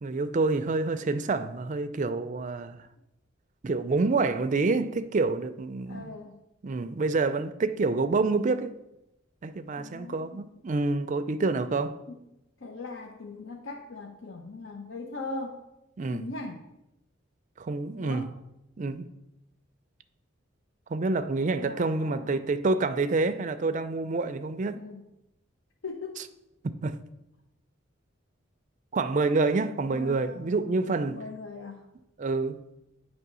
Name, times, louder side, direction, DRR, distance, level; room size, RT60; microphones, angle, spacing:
voice 1, 0.0-2.9 3.6-6.1 6.6-8.8 9.4-12.0 16.0-16.3 17.6-18.2 18.8-19.1 20.9-24.9 26.6-27.0 28.9-31.2 32.2-32.6, right 3 dB, 40° right, 0.4 m, -27 dB
voice 2, 5.9-6.4 9.8-10.4 12.1-12.2 12.6-15.6 16.1-16.7 18.0-18.3 21.6-22.4 24.7-25.1 25.8-26.2 29.9-30.6 31.1-31.8, left 3 dB, 70° left, 0.7 m, -40 dB
9.0 x 3.2 x 6.1 m
head